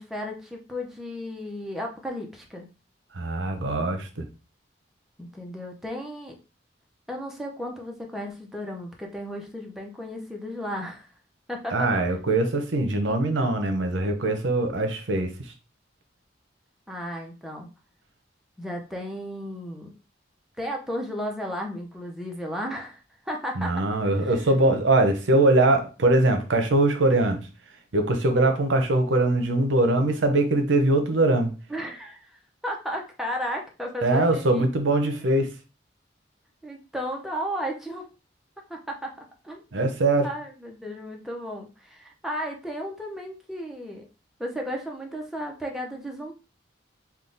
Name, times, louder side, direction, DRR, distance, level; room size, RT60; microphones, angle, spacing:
voice 1, 0.0-2.7 5.2-6.4 7.1-11.1 11.5-12.2 16.9-17.7 18.6-20.0 20.6-23.9 24.2-24.3 31.7-32.4 32.6-34.6 36.6-38.0 38.7-39.1 39.4-39.9 40.2-44.0 44.4-46.3, equal, ahead, 0.6 m, -34 dB
voice 2, 3.1-4.2 11.7-15.3 23.6-27.4 27.9-31.5 34.0-35.5 39.7-40.3, right 2 dB, 80° right, 0.7 m, -22 dB
3.7 x 2.2 x 3.8 m
head